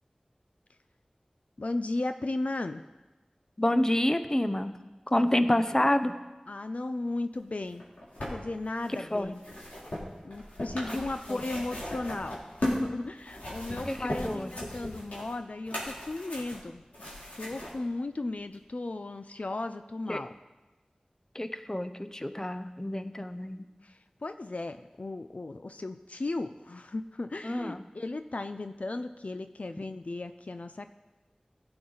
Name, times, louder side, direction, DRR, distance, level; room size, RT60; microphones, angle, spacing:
voice 1, 1.6-2.8 5.1-5.2 6.5-7.8 8.3-9.4 10.2-16.8 17.4-20.3 23.8-30.9, left 2 dB, 65° left, 9 dB, 0.4 m, -35 dB
voice 2, 3.6-4.8 5.1-6.1 9.1-9.3 11.3-11.4 13.9-14.5 20.1-20.2 21.3-23.7 27.4-27.8, left 1 dB, 25° left, 10 dB, 0.6 m, -28 dB
sound 1, 7.7-12.9 13.2-17.7 18.5-18.6, left 1 dB, 85° left, 3.0 m, -37 dB
16.0 x 7.8 x 3.9 m, 1.1 s
wide cardioid pair, 55°, 2 cm